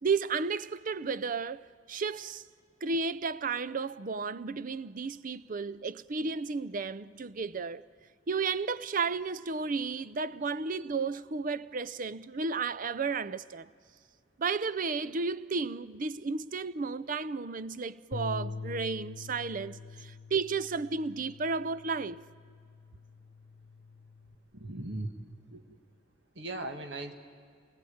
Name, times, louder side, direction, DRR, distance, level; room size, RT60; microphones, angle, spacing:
voice 1, 0.0-2.4 2.8-7.9 8.3-13.7 14.4-22.2, right 4 dB, 45° right, 0.6 m, -33 dB
Bass guitar, 18.1-24.4, left 3 dB, 55° left, 1.0 m, -44 dB
voice 2, 24.5-25.7 26.3-27.1, right 2 dB, 65° right, 1.6 m, -39 dB
27.0 x 20.0 x 8.6 m
head